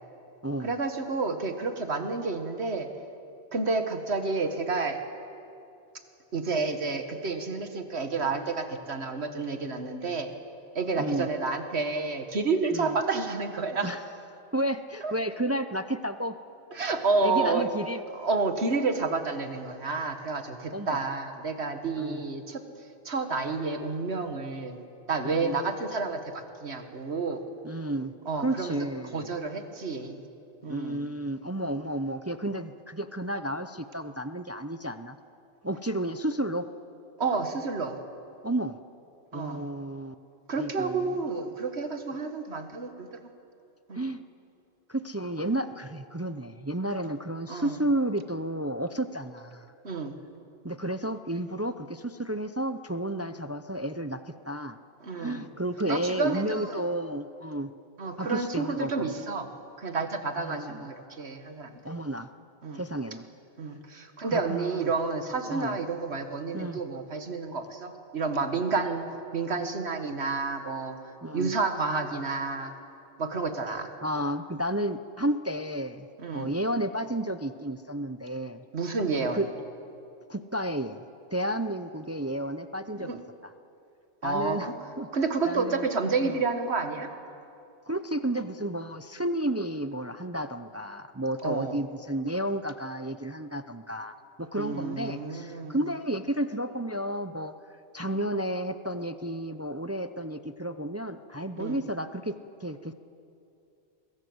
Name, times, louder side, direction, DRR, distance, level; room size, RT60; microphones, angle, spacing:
voice 1, 0.6-2.9 3.5-5.0 6.3-10.3 10.8-13.9 15.0-15.1 16.7-17.7 18.2-22.6 23.1-24.8 25.1-27.4 28.3-28.8 29.1-30.2 30.6-31.0 37.2-38.0 39.3-39.7 40.5-43.1 43.9-44.0 47.5-47.8 49.8-50.1 55.0-55.5 55.9-56.8 58.0-59.5 59.8-61.8 62.6-62.8 63.6-71.0 71.3-72.7 73.2-73.9 76.2-76.5 78.7-79.4 83.0-83.2 84.2-84.7 85.1-87.1 91.4-91.8 94.6-95.8 101.6-101.8, right 4 dB, 70° right, 7 dB, 1.8 m, -30 dB
voice 2, 11.0-11.3 12.7-13.0 13.8-14.0 14.5-16.4 17.2-18.0 20.7-21.0 22.0-22.2 25.2-25.6 27.6-28.1 28.4-29.3 30.7-35.2 35.6-36.7 38.4-38.7 39.3-40.1 40.6-41.1 43.9-44.2 44.9-49.7 50.6-54.8 55.1-57.7 58.2-59.1 60.4-60.9 61.8-62.3 62.7-63.3 64.3-64.7 65.5-65.8 66.5-66.8 71.2-71.5 73.7-76.1 76.3-78.6 79.1-79.5 80.3-81.0 81.3-83.1 84.2-84.7 85.0-85.8 86.2-86.3 87.9-97.5 97.9-102.3 102.6-102.9, right 1 dB, 20° right, 10 dB, 0.4 m, -32 dB
24.5 x 21.5 x 7.9 m, 2.7 s
omnidirectional pair, 1.1 m